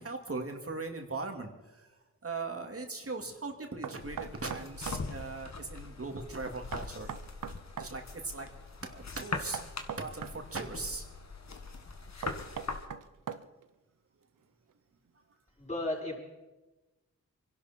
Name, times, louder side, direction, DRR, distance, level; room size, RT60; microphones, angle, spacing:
voice 1, 0.0-7.1 7.8-8.5 8.8-9.6 9.9-11.0, right 3 dB, 45° right, 3 dB, 2.6 m, -39 dB
Knock, 3.8-5.0 6.7-7.9 9.5-10.7 12.2-13.7, right 8 dB, 75° right, 0.8 m, -40 dB
sound 1, 4.0-12.9, left 4 dB, 55° left, 1.8 m, -42 dB
voice 2, 15.6-16.2, left 1 dB, 20° left, -3 dB, 6.0 m, -34 dB
25.0 x 11.5 x 4.5 m, 1.1 s
cardioid pair, 50°, 32 cm